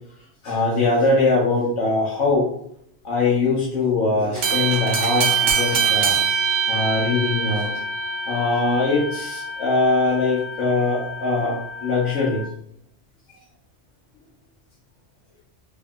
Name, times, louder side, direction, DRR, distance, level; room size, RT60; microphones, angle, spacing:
voice 1, 0.4-2.5 3.0-6.1 6.7-7.7 8.3-12.4, left 3 dB, 85° left, -6 dB, 1.2 m, -21 dB
sound 1, 4.4-12.5, right 5 dB, 85° right, 1.0 m, -25 dB
3.3 x 2.7 x 3.5 m, 0.69 s
omnidirectional pair, 1.2 m